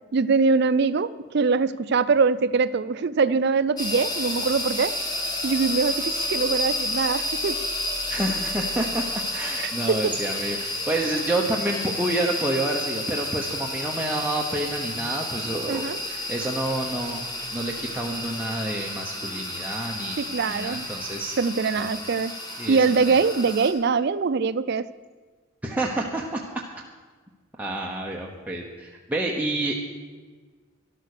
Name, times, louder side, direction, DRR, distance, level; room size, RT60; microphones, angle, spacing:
voice 1, 0.1-4.9 5.4-7.6 9.6-10.1 15.7-16.0 19.2-19.5 20.2-20.9 21.4-22.3 22.7-24.9, right 4 dB, 50° right, 15 dB, 0.4 m, -23 dB
sound 1, 3.8-23.7, left 1 dB, 20° left, 1.8 m, -31 dB
voice 2, 8.1-21.3 21.8-21.9 22.6-23.2 25.6-26.6 27.6-29.8, right 1 dB, 5° right, -2 dB, 0.9 m, -29 dB
12.5 x 11.5 x 6.7 m, 1.4 s
head